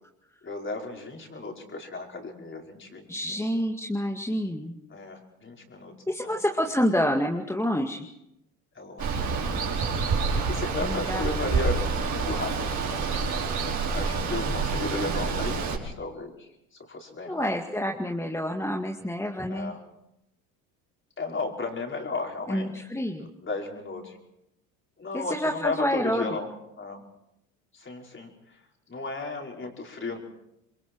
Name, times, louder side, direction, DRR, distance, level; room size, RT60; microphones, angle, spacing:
voice 1, 0.4-3.4 4.9-5.9 6.2-6.4 8.7-9.6 10.3-11.8 12.1-13.3 13.9-17.5 19.5-19.8 21.2-22.7 23.2-24.2 25.0-26.5 26.8-27.0 27.7-28.6 28.9-30.2, left 3 dB, 30° left, 1 dB, 5.4 m, -35 dB
voice 2, 3.1-4.8 6.1-8.1 10.8-11.3 17.2-19.7 22.5-23.3 25.1-26.4, equal, 5° left, 2 dB, 2.0 m, -28 dB
Water, 9.0-15.8, right 4 dB, 45° right, 5.8 m, -27 dB
28.0 x 23.0 x 4.7 m, 0.83 s
hypercardioid pair, 75°, 42 cm